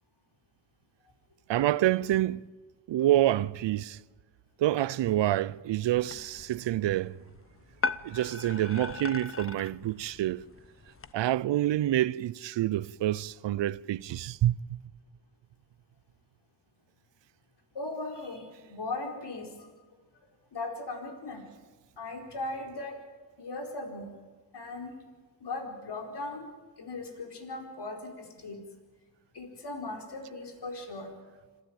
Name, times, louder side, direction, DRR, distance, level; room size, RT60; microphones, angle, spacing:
voice 1, 1.5-2.4 2.9-4.0 4.6-7.1 8.0-10.4 11.1-14.6, right 13 dB, 90° right, 0.6 m, -27 dB
sound 1, 6.0-11.1, left 4 dB, 30° left, 0.9 m, -39 dB
voice 2, 17.7-19.7 20.5-21.4 22.0-23.0 23.4-24.1 24.5-25.0 25.4-26.5 26.8-28.6 29.3-31.1, left 2 dB, 70° left, 4.7 m, -38 dB
26.5 x 13.5 x 8.9 m
cardioid pair, 65°, 42 cm